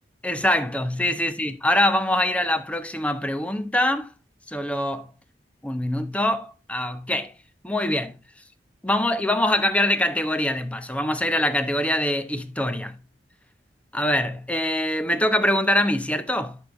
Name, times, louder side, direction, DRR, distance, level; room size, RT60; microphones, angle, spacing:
voice 1, 0.2-4.1 4.5-5.1 5.6-7.3 7.6-8.1 8.8-13.0 13.9-16.6, left 1 dB, 10° left, 0.9 m, -24 dB
11.5 x 6.5 x 2.6 m
head